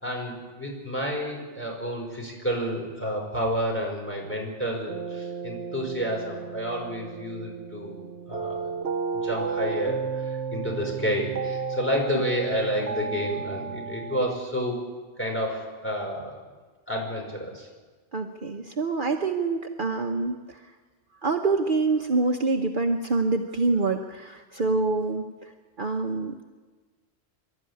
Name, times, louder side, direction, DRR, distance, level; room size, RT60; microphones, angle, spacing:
voice 1, 0.0-8.7 9.1-14.8 15.2-16.4 16.9-17.7, equal, 10° left, -1 dB, 5.4 m, -30 dB
sound 1, 4.9-14.4, right 5 dB, 75° right, 1.3 m, -33 dB
voice 2, 18.1-20.6 21.2-25.5 25.8-26.5, right 3 dB, 50° right, 3 dB, 1.2 m, -26 dB
25.0 x 12.5 x 9.8 m, 1.4 s
omnidirectional pair, 1.1 m